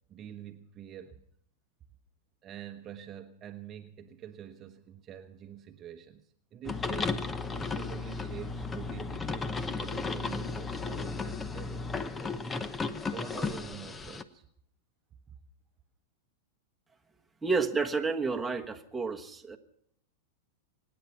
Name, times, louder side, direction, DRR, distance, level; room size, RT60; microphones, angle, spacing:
voice 1, 0.1-1.2 2.4-12.4 13.0-14.5, right 10 dB, 30° right, 6 dB, 1.0 m, -46 dB
sound 1, 6.7-14.2, left 4 dB, 15° left, 0.9 m, -34 dB
voice 2, 17.4-19.6, right 4 dB, 10° right, 3 dB, 1.3 m, -30 dB
24.5 x 9.8 x 5.9 m, 0.71 s
hypercardioid pair, 125°, 0 cm